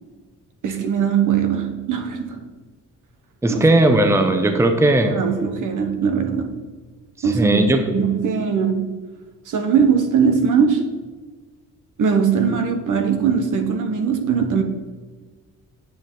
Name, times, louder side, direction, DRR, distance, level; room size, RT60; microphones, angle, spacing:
voice 1, 0.6-2.5 3.5-3.7 5.1-6.6 7.2-9.0 9.5-11.0 12.0-14.6, right 6 dB, 65° right, 1.1 m, -20 dB
voice 2, 3.4-5.2 7.3-7.9, right 1 dB, 10° right, 0.7 m, -17 dB
8.7 x 7.3 x 3.9 m
cardioid pair, 125°, 33 cm